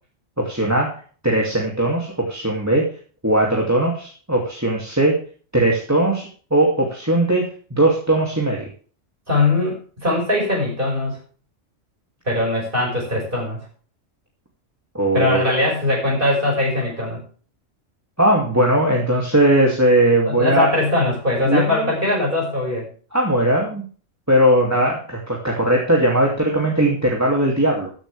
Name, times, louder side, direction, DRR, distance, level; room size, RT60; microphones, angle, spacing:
voice 1, 0.4-1.0 1.2-2.8 3.2-5.2 5.5-8.7 14.9-15.4 18.2-20.7 21.5-21.9 23.1-23.8 24.3-27.9, right 1 dB, 10° right, -1 dB, 2.5 m, -19 dB
voice 2, 9.3-11.2 12.3-13.6 15.1-17.2 20.3-22.9, left 2 dB, 45° right, -3 dB, 5.9 m, -21 dB
14.0 x 11.5 x 3.4 m, 0.41 s
omnidirectional pair, 1.3 m